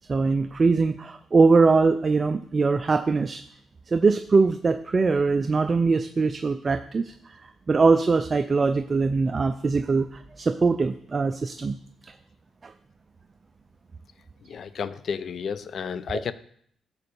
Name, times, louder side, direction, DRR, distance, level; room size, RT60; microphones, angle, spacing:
voice 1, 0.1-3.4 3.9-7.4 7.7-11.8 12.6-12.7, right 4 dB, 35° right, 9 dB, 0.4 m, -22 dB
voice 2, 14.5-16.3, left 6 dB, 60° left, 14 dB, 0.5 m, -31 dB
11.5 x 3.9 x 6.9 m, 0.65 s
cardioid pair, 90°, 0 cm